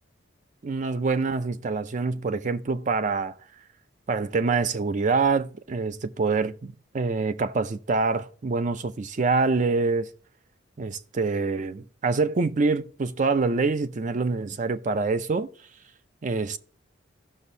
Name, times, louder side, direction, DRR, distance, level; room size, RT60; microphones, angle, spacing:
voice 1, 0.6-3.3 4.1-10.1 10.8-15.5 16.2-16.6, right 4 dB, 40° right, 0.4 m, -25 dB
15.5 x 6.0 x 2.7 m
head